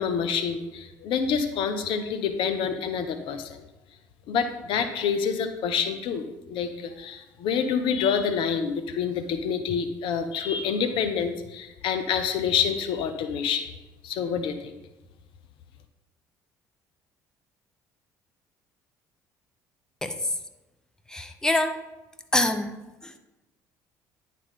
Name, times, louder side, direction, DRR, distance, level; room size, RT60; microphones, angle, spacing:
voice 1, 0.0-3.6 4.3-13.7 14.0-14.7, left 7 dB, 60° left, 8 dB, 0.6 m, -27 dB
voice 2, 21.1-21.8 22.3-22.7 23.0-23.1, left 1 dB, 5° left, 8 dB, 0.7 m, -25 dB
10.0 x 4.2 x 3.7 m, 1.0 s
hypercardioid pair, 55°, 10 cm